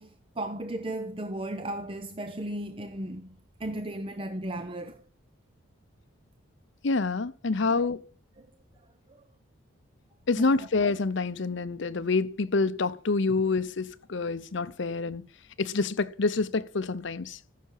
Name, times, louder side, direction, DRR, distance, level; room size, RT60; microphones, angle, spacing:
voice 1, 0.0-5.0 7.7-7.9 8.4-8.5 9.1-9.2 10.4-10.7, right 1 dB, 25° right, 0.6 m, -36 dB
voice 2, 6.8-8.0 10.3-15.2 15.6-17.4, left 3 dB, 65° left, 0.7 m, -27 dB
14.5 x 6.6 x 5.4 m
head